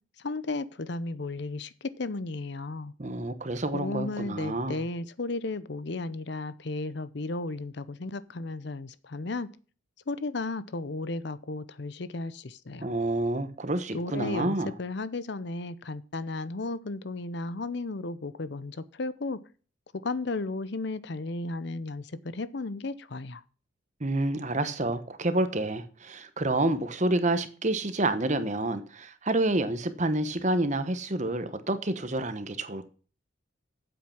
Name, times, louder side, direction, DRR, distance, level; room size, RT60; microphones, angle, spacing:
voice 1, 0.2-2.9 3.7-9.5 10.1-12.9 13.9-19.4 19.9-23.4, left 3 dB, 60° left, 0.7 m, -34 dB
voice 2, 3.0-4.8 12.8-14.7 24.0-32.9, right 2 dB, 35° right, 1.1 m, -28 dB
8.9 x 7.8 x 5.8 m
head